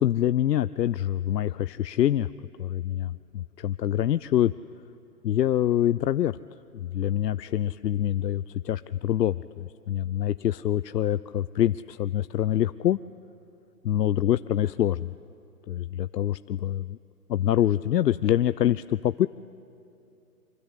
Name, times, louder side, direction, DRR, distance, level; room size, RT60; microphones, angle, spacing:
voice 1, 0.0-2.3 2.6-4.5 5.2-6.4 6.7-13.0 13.9-15.1 15.7-17.0 17.3-19.3, left 11 dB, 85° left, 14 dB, 0.6 m, -25 dB
26.5 x 24.5 x 8.2 m, 2.7 s
hypercardioid pair, 165°, 48 cm